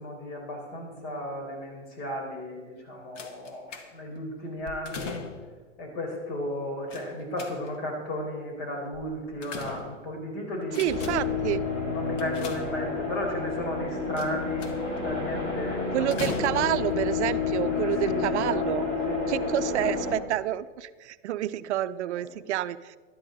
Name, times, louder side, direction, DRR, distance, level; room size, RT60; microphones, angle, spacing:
voice 1, 0.0-5.2 5.8-10.8 11.8-14.8 15.0-16.4 17.7-20.0 22.1-22.5, left 1 dB, 50° left, 1 dB, 4.6 m, -35 dB
sound 1, 3.2-4.2 4.6-5.6 6.9-7.9 8.9-10.2 10.6-11.4 12.2-13.2 14.2-15.0 16.1-16.9 17.8-17.9 18.2-18.3, left 4 dB, 70° left, 1.7 m, -39 dB
voice 2, 10.8-11.6 15.9-18.9 19.3-23.0, right 13 dB, 65° right, 14 dB, 0.5 m, -28 dB
sound 2, 10.9-20.1, left 5 dB, 30° left, 4.4 m, -30 dB
12.5 x 12.0 x 4.0 m, 1.4 s
hypercardioid pair, 130°, 38 cm